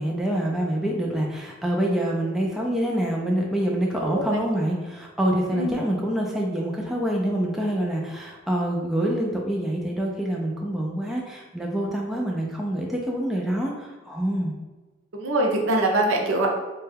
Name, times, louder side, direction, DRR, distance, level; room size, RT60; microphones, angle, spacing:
voice 1, 0.0-14.6, right 1 dB, ahead, -3 dB, 0.3 m, -26 dB
voice 2, 15.1-16.5, right 1 dB, 80° right, 1 dB, 0.6 m, -23 dB
3.2 x 2.2 x 3.3 m, 1.2 s
head